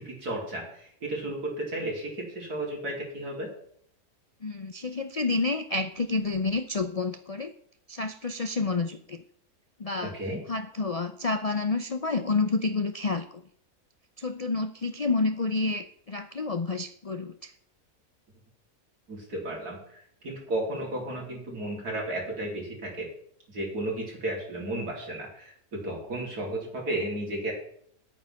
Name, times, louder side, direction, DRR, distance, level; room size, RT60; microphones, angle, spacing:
voice 1, 0.0-3.5 10.0-10.4 19.1-23.1 23.5-27.5, right 1 dB, 90° right, -1 dB, 4.1 m, -33 dB
voice 2, 4.4-7.5 7.9-9.2 9.8-10.1 10.5-13.4 14.2-17.5, left 3 dB, 60° left, 9 dB, 0.3 m, -29 dB
10.0 x 8.9 x 5.8 m, 0.64 s
omnidirectional pair, 1.6 m